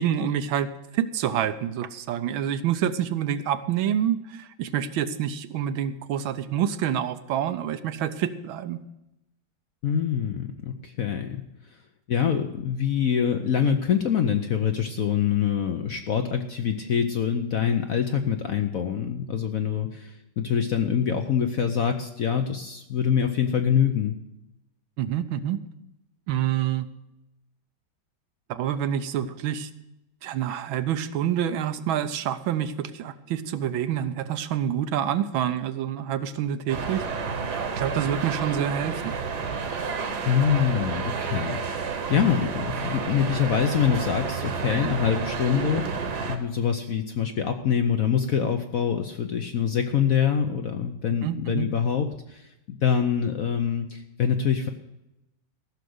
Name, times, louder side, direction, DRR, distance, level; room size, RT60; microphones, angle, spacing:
voice 1, 0.0-8.8 25.0-25.6 26.3-26.9 28.5-29.7 30.2-37.1 37.8-39.1 51.2-51.7, right 10 dB, 80° right, 11 dB, 1.5 m, -27 dB
voice 2, 9.8-11.4 12.1-24.2 40.2-54.7, left 8 dB, 60° left, 6 dB, 0.9 m, -25 dB
sound 1, 36.7-46.4, right 5 dB, 55° right, 1.6 m, -30 dB
15.0 x 6.6 x 7.8 m, 0.89 s
omnidirectional pair, 2.2 m